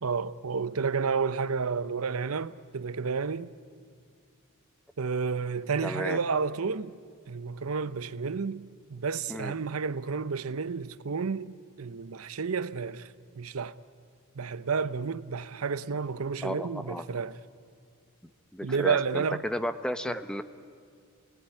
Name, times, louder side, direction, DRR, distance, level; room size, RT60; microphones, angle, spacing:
voice 1, 0.0-3.5 5.0-6.9 7.3-13.7 14.4-17.4 18.6-19.4 20.0-20.2, right 5 dB, 90° right, 0.7 m, -31 dB
voice 2, 5.8-6.2 9.3-9.5 16.4-17.0 18.5-20.4, equal, 5° left, 0.9 m, -33 dB
28.0 x 19.5 x 10.0 m
head